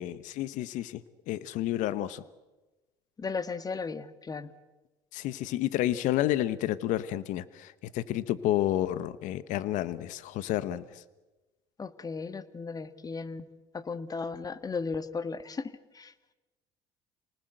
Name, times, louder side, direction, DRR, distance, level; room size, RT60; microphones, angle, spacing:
voice 1, 0.0-2.2 5.1-11.0, left 13 dB, 70° left, 16 dB, 1.1 m, -30 dB
voice 2, 3.2-4.5 11.8-13.5 13.7-16.1, left 4 dB, 30° left, 13 dB, 1.6 m, -36 dB
28.5 x 19.5 x 7.9 m, 1.1 s
supercardioid pair, 90°, 13 cm